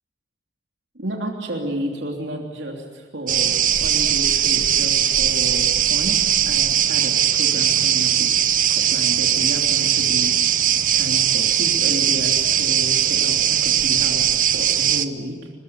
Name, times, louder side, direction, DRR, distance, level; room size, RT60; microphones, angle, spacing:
voice 1, 0.9-3.5 3.8-8.3 8.7-15.5, right 1 dB, 75° right, 0 dB, 3.2 m, -32 dB
sound 1, 3.3-15.0, right 10 dB, 45° right, 0.9 m, -19 dB
24.5 x 20.5 x 9.9 m, 1.4 s
head